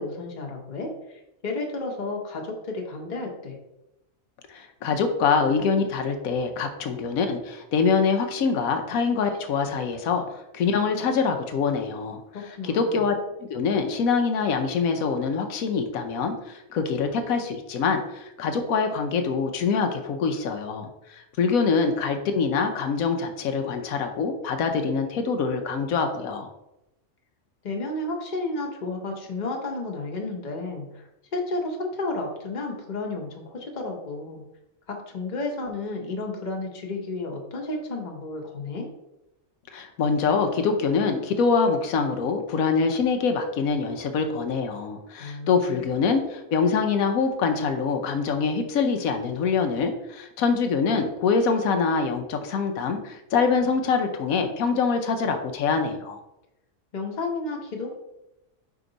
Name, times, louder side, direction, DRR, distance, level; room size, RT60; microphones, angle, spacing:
voice 1, 0.0-3.6 12.3-13.0 27.6-34.4 34.9-38.9 45.2-45.9 56.9-57.9, left 2 dB, 35° left, 1 dB, 1.0 m, -32 dB
voice 2, 4.5-12.2 12.6-13.1 13.4-26.5 39.7-56.2, left 5 dB, 85° left, 5 dB, 1.1 m, -24 dB
5.1 x 4.7 x 3.9 m, 0.89 s
omnidirectional pair, 1.4 m